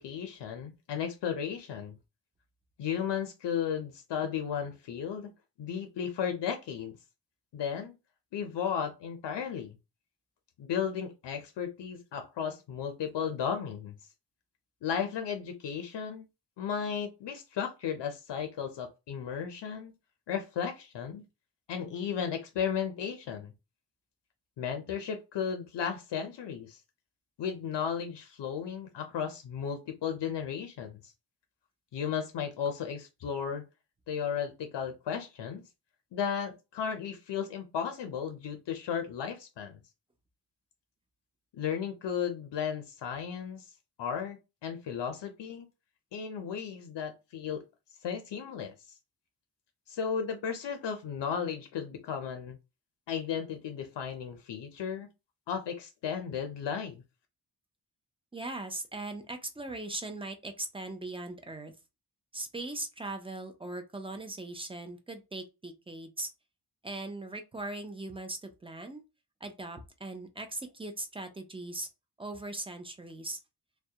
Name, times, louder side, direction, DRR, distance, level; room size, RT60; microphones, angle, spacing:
voice 1, 0.0-2.0 2.8-5.3 5.6-7.0 7.5-8.0 8.3-9.8 10.6-13.9 14.8-16.3 16.6-19.9 20.3-21.2 21.7-23.5 24.6-26.8 27.4-31.0 31.9-33.7 34.1-35.6 36.1-39.8 41.5-43.7 44.0-45.7 46.1-47.6 48.0-48.7 49.9-52.6 53.1-55.1 55.5-57.0, left 7 dB, 80° left, 0.5 m, -34 dB
voice 2, 58.3-61.7 62.3-66.3 66.8-69.0 69.4-71.9 72.2-73.4, right 2 dB, 15° right, 0.3 m, -39 dB
2.2 x 2.1 x 2.7 m
wide cardioid pair, 115°, 42 cm